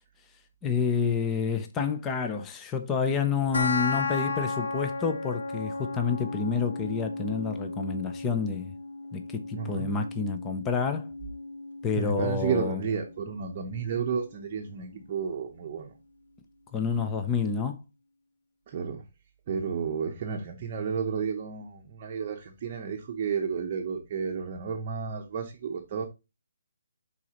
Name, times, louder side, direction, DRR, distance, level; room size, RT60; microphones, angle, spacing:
voice 1, 0.6-8.7 9.1-11.2 11.8-12.8 16.7-17.8, left 5 dB, 10° left, 0.5 m, -29 dB
sound 1, 3.5-14.5, left 3 dB, 80° left, 1.9 m, -35 dB
voice 2, 9.5-9.9 12.0-15.9 18.7-19.0 19.5-26.1, right 6 dB, 25° right, 0.8 m, -32 dB
11.0 x 4.1 x 2.9 m
hypercardioid pair, 175°, 0 cm